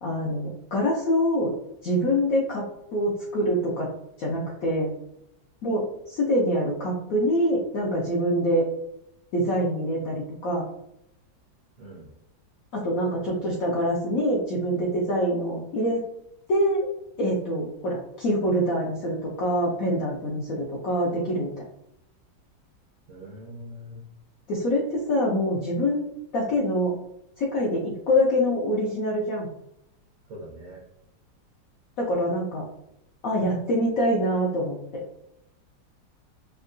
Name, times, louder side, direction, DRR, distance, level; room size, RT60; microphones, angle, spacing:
voice 1, 0.0-1.5 1.8-3.9 4.2-4.9 5.6-8.7 9.3-10.6 12.7-16.0 16.5-16.9 17.2-21.5 24.5-26.9 27.4-29.5 32.0-32.6 33.2-35.0, equal, 70° left, -4 dB, 0.8 m, -25 dB
voice 2, 11.8-12.1 23.1-24.0 30.3-30.8, equal, 70° right, -4 dB, 0.8 m, -42 dB
3.5 x 2.2 x 2.5 m, 0.81 s
omnidirectional pair, 2.0 m